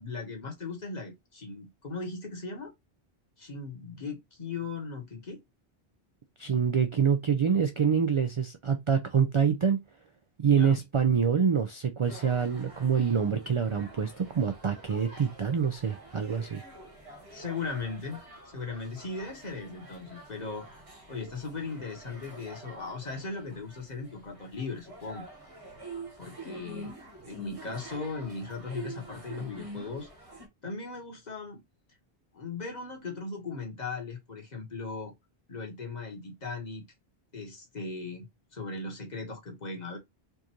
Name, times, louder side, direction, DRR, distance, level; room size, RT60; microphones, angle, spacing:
voice 1, 0.0-2.7 3.4-5.4 10.5-10.8 17.3-18.2 18.4-20.6 21.1-25.3 26.2-26.9 27.2-30.1 30.6-31.6 32.3-35.1 35.5-36.8 37.3-38.3 38.5-40.0, left 4 dB, 45° left, 1.3 m, -38 dB
voice 2, 6.4-9.8 10.4-16.6, right 6 dB, 50° right, 0.3 m, -26 dB
sound 1, 12.0-30.5, right 2 dB, 35° right, 1.3 m, -47 dB
4.6 x 2.5 x 2.9 m
omnidirectional pair, 1.0 m